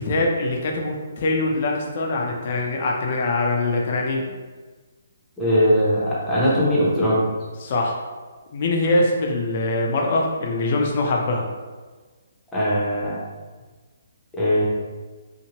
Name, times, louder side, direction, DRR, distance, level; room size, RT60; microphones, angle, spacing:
voice 1, 0.0-4.3 7.6-7.9 8.5-11.4, left 2 dB, 45° left, 0 dB, 0.5 m, -23 dB
voice 2, 5.4-7.3 12.5-13.2 14.4-14.7, equal, 5° left, -9 dB, 0.7 m, -20 dB
2.8 x 2.1 x 2.9 m, 1.4 s
hypercardioid pair, 160°, 0 cm